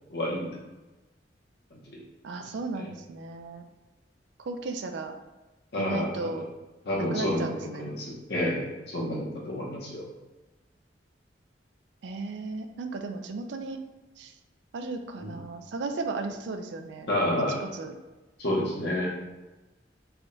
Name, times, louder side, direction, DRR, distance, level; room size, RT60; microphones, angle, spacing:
voice 1, 0.1-0.5 1.7-2.0 2.8-2.9 5.7-6.4 6.8-10.0 15.2-15.4 17.1-17.6 18.4-19.1, left 1 dB, 65° left, -4 dB, 1.0 m, -30 dB
voice 2, 2.2-3.7 4.4-5.2 5.8-6.4 7.0-7.9 12.0-13.8 14.2-14.3 14.7-17.1 17.6-17.9, right 3 dB, 85° right, 6 dB, 0.4 m, -35 dB
3.5 x 2.2 x 3.8 m, 1.1 s
head